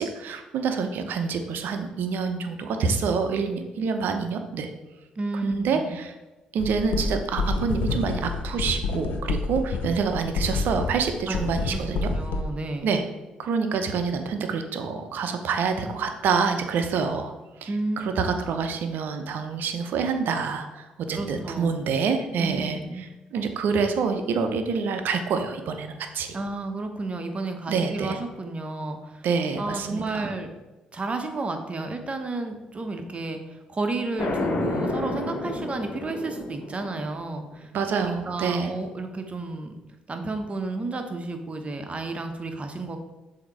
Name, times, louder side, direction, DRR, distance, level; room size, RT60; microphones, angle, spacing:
voice 1, 0.0-4.7 5.4-6.1 6.5-12.1 12.8-13.0 13.4-17.3 17.6-17.7 18.0-26.4 27.7-28.2 29.2-30.3 37.7-38.7, right 5 dB, 65° right, 7 dB, 0.7 m, -27 dB
voice 2, 5.2-6.0 11.3-13.0 17.7-18.4 21.1-21.7 22.4-23.1 26.3-29.3 29.6-30.5 30.9-39.7 40.1-43.0, right 2 dB, 35° right, 6 dB, 0.9 m, -32 dB
sound 1, 6.6-12.4, left 3 dB, 70° left, 0.6 m, -28 dB
sound 2, 34.2-37.0, left 2 dB, 50° left, 1.0 m, -30 dB
7.1 x 2.9 x 4.6 m, 1.1 s
hypercardioid pair, 45°, 4 cm